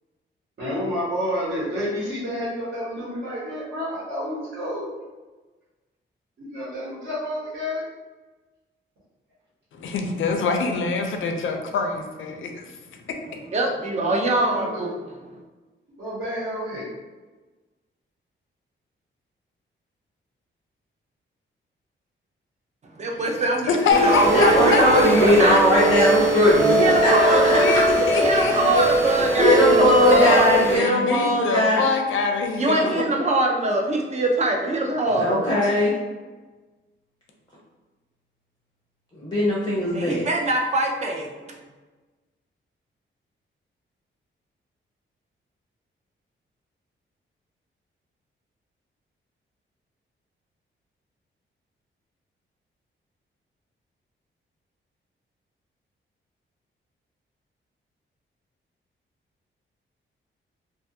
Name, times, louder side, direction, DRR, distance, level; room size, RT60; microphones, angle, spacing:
voice 1, 0.6-4.9 6.4-7.8 14.0-14.9 16.0-16.9, equal, 60° right, -10 dB, 1.0 m, -30 dB
voice 2, 9.7-13.4 23.1-23.2 23.7-25.3 26.6-28.5 29.9-33.1, left 4 dB, 75° left, 4 dB, 0.4 m, -25 dB
voice 3, 13.5-15.0 15.3-15.4 23.0-25.6 26.8-27.5 27.8-30.8 32.6-35.5 39.9-41.3, right 2 dB, 35° right, 1 dB, 0.4 m, -23 dB
sound 1, 23.9-30.8, right 2 dB, 85° right, 0.8 m, -21 dB
voice 4, 24.3-27.8 29.4-31.8 35.1-36.0 39.2-40.2, left 1 dB, 20° left, -7 dB, 0.5 m, -20 dB
2.4 x 2.3 x 2.6 m, 1.3 s
wide cardioid pair, 150°, 20 cm